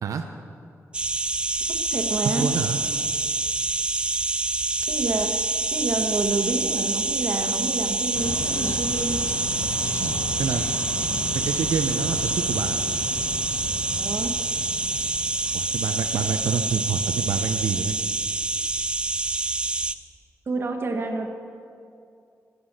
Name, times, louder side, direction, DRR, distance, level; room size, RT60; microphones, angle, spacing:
sound 1, 0.9-19.9, right 2 dB, 20° right, 0.4 m, -26 dB
voice 1, 1.7-2.5 4.9-5.4 5.7-9.2 14.0-14.3 20.5-21.3, right 3 dB, 45° right, 4 dB, 1.3 m, -28 dB
voice 2, 2.4-2.8 10.0-10.7 11.3-12.8 15.5-18.0, right 6 dB, 90° right, 5 dB, 0.7 m, -27 dB
sound 2, 8.1-16.2, left 3 dB, 70° left, 0.9 m, -35 dB
11.5 x 9.5 x 7.3 m, 2.4 s
wide cardioid pair, 135°, 6 cm